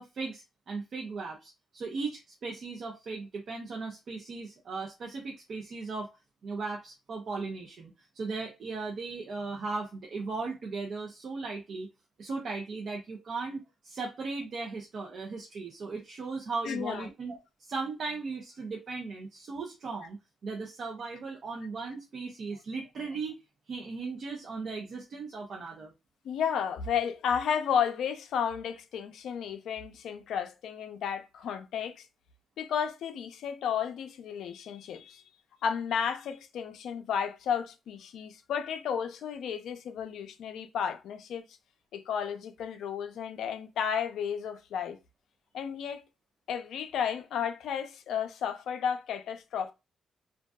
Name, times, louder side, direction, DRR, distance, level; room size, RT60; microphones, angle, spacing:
voice 1, 0.0-6.1 6.4-11.9 12.2-20.2 20.4-23.4 23.7-25.9, right 4 dB, 55° right, 0.6 m, -37 dB
voice 2, 16.6-17.1 26.2-32.1 32.6-35.2 35.6-41.4 41.9-45.0 45.5-46.0 46.5-49.7, left 7 dB, 80° left, 0.4 m, -33 dB
2.6 x 2.2 x 2.2 m
cardioid pair, 95°, 0 cm